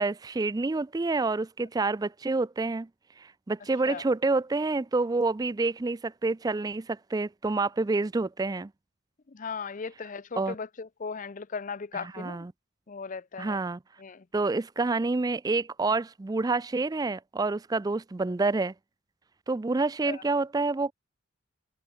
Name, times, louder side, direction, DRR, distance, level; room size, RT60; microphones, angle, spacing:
voice 1, 0.0-2.9 3.2-8.7 10.0-10.1 10.3-10.6 11.9-12.5 13.4-13.8 14.3-18.7 19.5-20.9, right 3 dB, 20° right, 0.3 m, -28 dB
voice 2, 9.3-12.5 12.9-13.6 14.0-14.2 20.1-20.2, left 5 dB, 40° left, 0.5 m, -37 dB
head